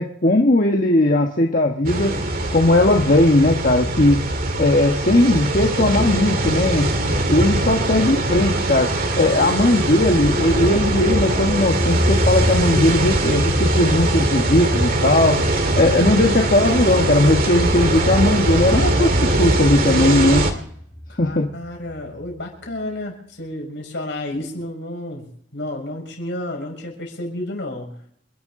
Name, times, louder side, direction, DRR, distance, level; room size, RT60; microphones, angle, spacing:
voice 1, 0.0-2.1 2.5-4.2 4.6-6.9 7.3-8.9 9.2-15.4 15.7-19.1 19.4-20.5 21.2-21.5, left 1 dB, 45° left, 2 dB, 1.3 m, -18 dB
sound 1, 1.8-20.5, right 1 dB, 50° right, 2.2 m, -21 dB
voice 2, 7.0-7.6 21.1-28.0, left 1 dB, 70° left, 1 dB, 6.3 m, -32 dB
sound 2, 11.2-22.0 22.3-22.4, equal, 10° left, 2.3 m, -27 dB
28.5 x 11.5 x 3.8 m, 0.67 s
head